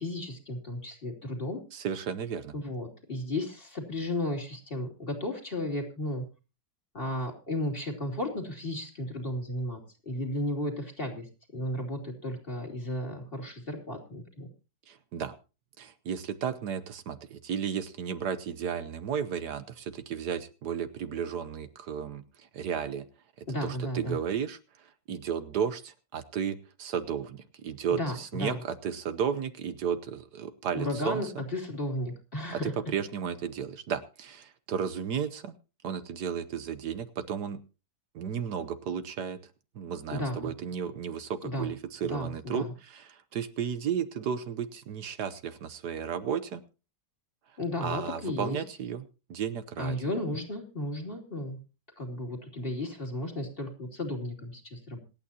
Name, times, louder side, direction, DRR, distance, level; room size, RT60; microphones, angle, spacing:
voice 1, 0.0-1.6 2.5-6.2 6.9-9.8 10.1-11.2 11.5-14.5 23.5-24.2 28.0-28.1 28.4-28.6 30.7-32.7 40.1-40.5 41.4-41.7 42.1-42.7 47.6-48.6 49.8-51.6 52.0-55.0, left 1 dB, 30° left, 2 dB, 3.1 m, -34 dB
voice 2, 1.7-2.5 14.9-15.3 15.8-23.0 23.6-24.6 25.1-31.4 32.5-35.5 35.8-37.6 38.1-39.4 39.8-46.6 47.8-50.0, right 7 dB, 70° right, 11 dB, 1.4 m, -33 dB
26.5 x 9.0 x 2.8 m, 0.32 s
omnidirectional pair, 1.9 m